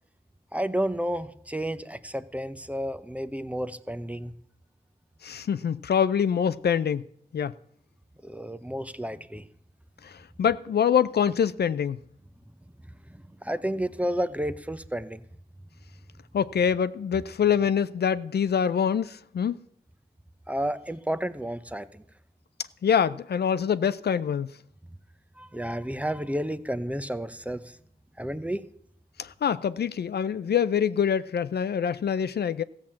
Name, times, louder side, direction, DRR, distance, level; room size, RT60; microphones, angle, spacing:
voice 1, 0.5-4.3 8.2-9.5 13.1-15.2 20.5-22.0 25.4-27.8 28.2-28.7, equal, 10° right, 0.7 m, -31 dB
voice 2, 5.2-7.1 7.3-7.5 10.0-12.0 16.3-19.6 22.8-24.5 29.2-32.6, left 8 dB, 75° left, 0.5 m, -25 dB
14.5 x 7.3 x 7.5 m
cardioid pair, 60°, 17 cm